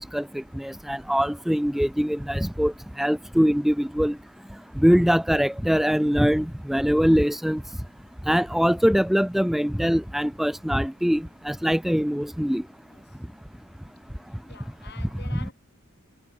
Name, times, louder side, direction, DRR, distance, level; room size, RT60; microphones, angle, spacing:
voice 1, 0.6-4.1 4.8-7.6 8.3-12.6, equal, ahead, 0.3 m, -22 dB
voice 2, 12.9-13.2 14.5-15.5, left 4 dB, 50° left, 6.3 m, -47 dB
head